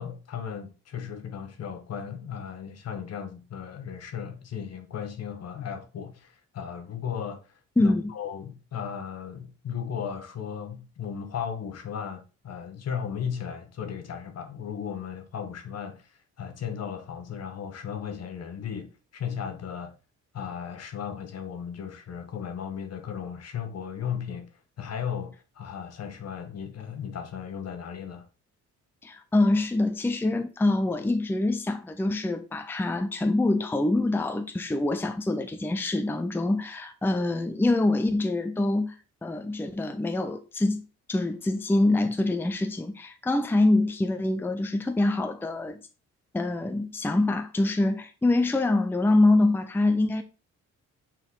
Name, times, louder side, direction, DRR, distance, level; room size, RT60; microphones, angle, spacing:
voice 1, 0.0-19.9 20.3-24.5 24.8-28.3, left 7 dB, 55° left, 1.2 m, -36 dB
voice 2, 7.8-8.1 29.0-39.0 39.2-40.8 41.1-45.8 46.3-50.2, left 2 dB, 5° left, 0.6 m, -25 dB
5.9 x 4.5 x 3.8 m
cardioid pair, 90°, 30 cm